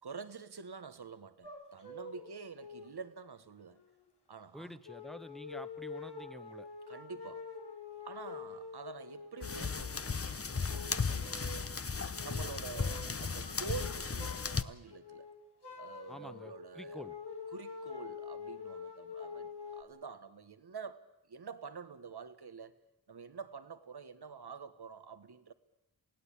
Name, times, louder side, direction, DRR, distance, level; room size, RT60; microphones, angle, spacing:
voice 1, 0.0-3.8 4.3-4.8 6.9-7.5 8.0-11.6 12.2-15.3 15.8-17.1 17.5-22.8 23.1-25.5, right 5 dB, 75° right, 1.4 m, -47 dB
sound 1, 1.4-2.3 2.6-3.0 3.8-3.9 4.8-10.1 10.5-11.8 12.0-12.4 12.7-13.2 13.4-14.6 14.9-19.8, left 4 dB, 90° left, 3.1 m, -46 dB
voice 2, 4.5-6.7 11.2-11.4 16.1-17.2, equal, ahead, 1.1 m, -49 dB
sound 2, 9.4-14.6, left 5 dB, 35° left, 0.9 m, -36 dB
28.0 x 17.0 x 8.6 m
wide cardioid pair, 55°, 39 cm